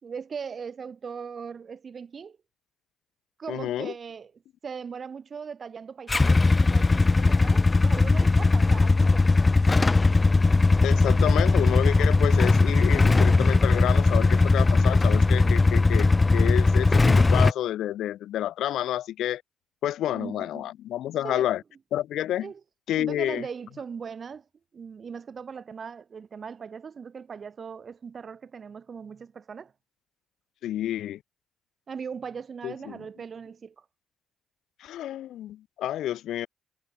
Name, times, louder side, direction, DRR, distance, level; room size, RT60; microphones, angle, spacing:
voice 1, 0.0-2.4 3.4-4.3 4.6-9.3 15.4-15.6 20.1-20.7 21.2-21.5 22.4-22.6 23.0-24.5 24.7-29.7 31.9-33.9, right 6 dB, 45° right, 4.1 m, -39 dB
voice 2, 3.5-3.9 10.8-19.4 19.8-21.6 21.9-22.5 22.9-23.4 30.6-31.2 32.6-33.0 34.8-36.5, left 12 dB, 80° left, 1.1 m, -29 dB
Motorcycle / Engine starting / Idling, 6.1-17.5, left 3 dB, 25° left, 1.7 m, -19 dB
cardioid pair, 90°, 0 cm